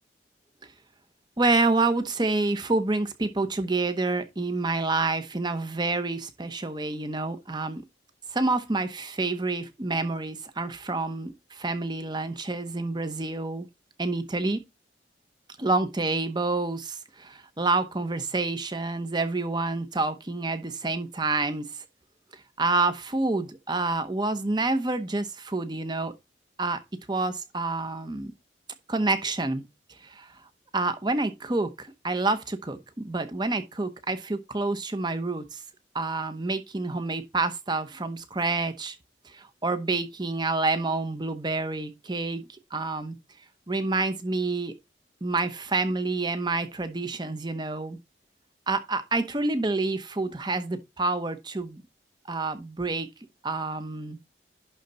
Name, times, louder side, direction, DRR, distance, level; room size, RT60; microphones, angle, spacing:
voice 1, 1.4-7.8 8.3-13.7 14.0-14.6 15.6-21.8 22.6-26.1 26.6-26.8 27.1-28.3 28.9-29.6 30.0-30.3 30.7-35.6 35.9-38.9 39.3-42.4 42.7-43.2 43.7-44.7 45.2-48.0 48.7-51.8 52.3-53.1 53.4-54.2, right 3 dB, 25° right, 0.9 m, -28 dB
11.0 x 3.9 x 4.3 m
head